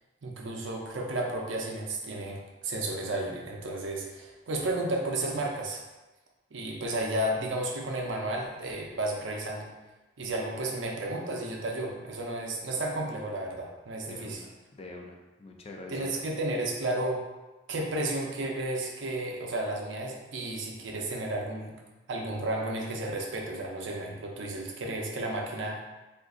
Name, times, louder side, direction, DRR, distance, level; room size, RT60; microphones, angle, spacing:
voice 1, 0.2-5.8 6.5-9.7 10.2-14.4 15.9-17.2 17.7-21.8 22.1-25.8, right 1 dB, 70° right, 0 dB, 0.5 m, -32 dB
voice 2, 14.1-16.2, left 2 dB, 30° left, 2 dB, 0.3 m, -46 dB
2.5 x 2.3 x 3.6 m, 1.1 s
head